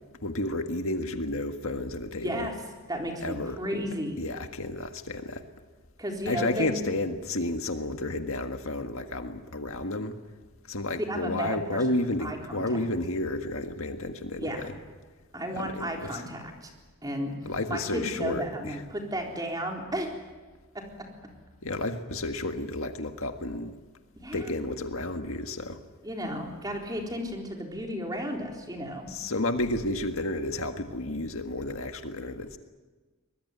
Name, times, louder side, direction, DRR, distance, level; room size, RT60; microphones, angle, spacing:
voice 1, 0.2-2.5 3.2-3.6 4.2-5.4 6.3-10.1 10.7-14.4 15.5-16.2 17.5-18.8 21.6-23.7 24.3-25.8 29.1-32.6, left 2 dB, 70° left, 6 dB, 1.8 m, -31 dB
voice 2, 2.1-2.5 2.9-4.2 6.0-6.7 11.1-11.8 12.2-12.8 14.4-14.7 15.3-16.7 17.0-17.3 17.7-20.2 24.2-24.5 26.0-29.1, equal, 15° right, 1 dB, 4.0 m, -33 dB
24.0 x 20.0 x 9.8 m, 1.3 s
head